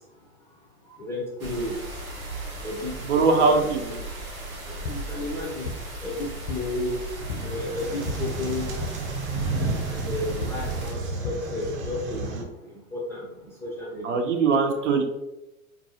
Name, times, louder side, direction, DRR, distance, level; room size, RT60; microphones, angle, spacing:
voice 1, 0.9-1.8 2.6-4.1 4.7-5.7 6.0-8.8 9.9-14.2, left 2 dB, 5° left, -5 dB, 0.5 m, -33 dB
sound 1, 1.4-10.9, right 2 dB, 90° right, 0.8 m, -37 dB
voice 2, 3.1-3.8 14.0-15.0, right 4 dB, 60° right, 4 dB, 0.7 m, -21 dB
sound 2, 4.5-12.3, left 4 dB, 60° left, 0.6 m, -38 dB
sound 3, 7.2-12.4, right 3 dB, 35° right, 1.0 m, -32 dB
3.9 x 2.6 x 2.7 m, 0.95 s
figure-of-eight pair, 90°, 42 cm